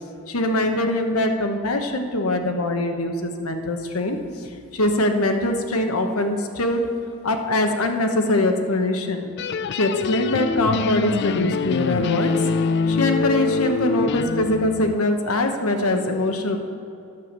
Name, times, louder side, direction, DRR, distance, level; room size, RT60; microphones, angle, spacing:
voice 1, 0.3-6.9 7.2-9.3 9.7-12.5 12.9-16.6, left 1 dB, 85° left, 5 dB, 1.1 m, -23 dB
sound 1, 9.4-15.0, left 4 dB, 50° left, 0.3 m, -24 dB
10.5 x 7.0 x 7.4 m, 2.7 s
head